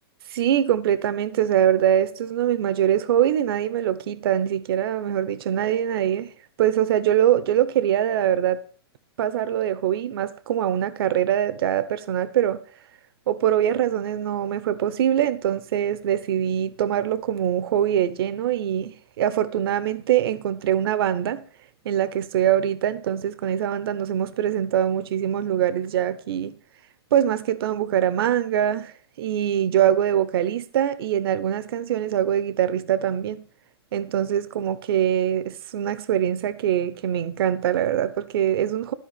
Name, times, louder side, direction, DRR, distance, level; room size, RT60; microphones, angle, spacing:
voice 1, 0.3-6.3 6.6-8.6 9.2-12.6 13.3-21.4 21.8-26.5 27.1-33.4 33.9-38.9, right 10 dB, 65° right, 0.9 m, -23 dB
13.5 x 4.8 x 8.4 m
hypercardioid pair, 140°, 13 cm